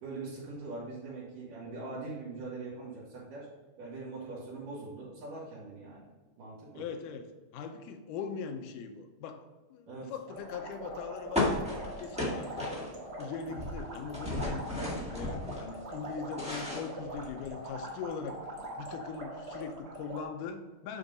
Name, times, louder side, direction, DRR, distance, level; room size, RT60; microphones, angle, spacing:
voice 1, 0.0-3.5 3.8-6.1 6.4-6.8 9.9-10.1 13.5-13.6, right 3 dB, 80° right, -8 dB, 3.5 m, -42 dB
voice 2, 6.8-7.3 7.5-11.7 12.0-12.7 13.2-14.7 15.1-18.4 18.8-21.0, left 6 dB, 80° left, 6 dB, 2.2 m, -41 dB
sound 1, 10.3-20.2, right 1 dB, 40° right, 0.9 m, -43 dB
sound 2, 11.3-13.2 13.5-15.6 16.0-17.6, left 2 dB, 10° right, 0.4 m, -34 dB
8.8 x 3.7 x 5.3 m, 1.3 s
omnidirectional pair, 3.8 m